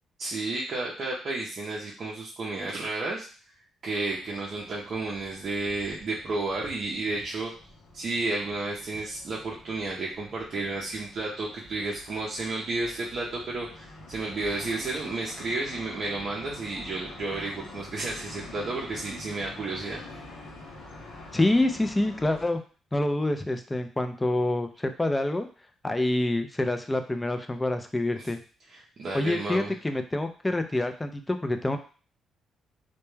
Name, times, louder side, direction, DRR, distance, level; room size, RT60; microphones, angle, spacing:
voice 1, 0.2-3.3 3.8-7.5 7.9-20.0 28.7-29.7, right 2 dB, 50° right, -5 dB, 0.5 m, -32 dB
sound 1, 4.0-22.5, left 2 dB, 85° left, 0.6 m, -47 dB
voice 2, 21.3-22.6 22.9-25.5 25.8-28.4 29.1-31.8, left 1 dB, 15° left, 8 dB, 0.3 m, -26 dB
2.1 x 2.1 x 3.1 m, 0.39 s
cardioid pair, 90°, 0 cm